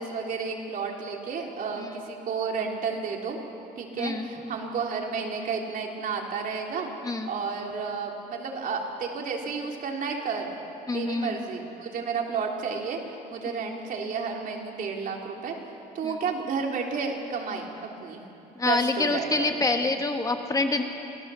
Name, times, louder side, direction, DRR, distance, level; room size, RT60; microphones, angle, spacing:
voice 1, 0.0-3.4 3.8-10.5 10.9-15.6 15.9-18.2 18.6-19.6, right 5 dB, 55° right, 1 dB, 3.5 m, -32 dB
voice 2, 4.0-4.5 7.0-7.3 10.9-11.4 13.5-13.6 16.0-16.1 18.6-20.8, left 3 dB, 20° left, 5 dB, 1.9 m, -27 dB
26.5 x 18.0 x 7.1 m, 2.8 s
cardioid pair, 110°, 17 cm